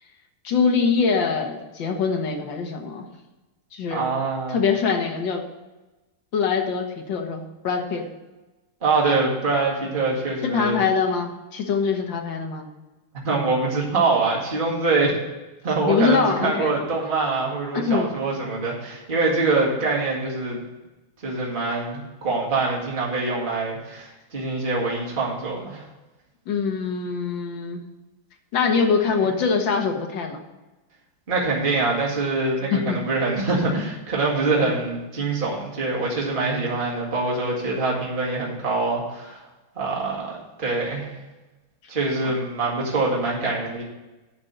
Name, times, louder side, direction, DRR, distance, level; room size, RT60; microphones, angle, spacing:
voice 1, 0.4-3.0 3.7-4.0 4.5-5.5 6.3-8.1 10.4-12.7 15.9-16.7 17.7-18.1 26.5-27.8 28.5-30.4 32.7-33.0, left 5 dB, 60° left, 3 dB, 1.9 m, -23 dB
voice 2, 3.9-4.6 8.8-10.9 13.2-15.1 15.6-20.6 21.2-25.9 29.2-29.3 31.3-39.4 39.8-41.1 41.9-43.8, right 3 dB, 25° right, -4 dB, 2.1 m, -24 dB
9.7 x 5.3 x 7.9 m, 1.1 s
omnidirectional pair, 2.4 m